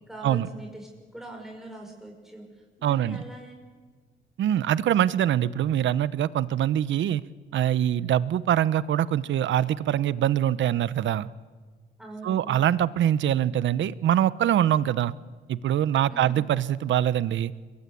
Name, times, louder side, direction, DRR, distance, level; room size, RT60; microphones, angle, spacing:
voice 1, 0.0-3.6 12.0-12.6 16.1-16.4, right 2 dB, ahead, 1 dB, 6.2 m, -42 dB
voice 2, 2.8-3.2 4.4-7.2 7.5-11.3 12.2-15.1 15.5-17.5, right 11 dB, 70° right, 17 dB, 1.0 m, -24 dB
30.0 x 23.0 x 8.5 m, 1.5 s
cardioid pair, 90°, 20 cm